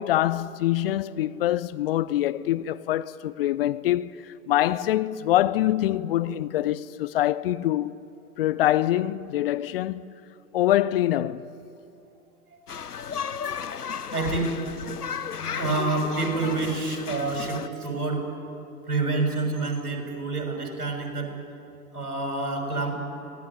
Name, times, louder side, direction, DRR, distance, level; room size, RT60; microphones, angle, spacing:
voice 1, 0.0-7.9 8.4-10.1 10.5-11.5, left 13 dB, 40° left, 0.6 m, -24 dB
sound 1, 12.7-17.7, left 7 dB, 90° left, 0.8 m, -34 dB
voice 2, 14.1-14.5 15.5-18.2 18.9-21.3 21.9-22.9, right 3 dB, 80° right, 6.3 m, -27 dB
24.5 x 18.5 x 10.0 m
figure-of-eight pair, 110°, 45 cm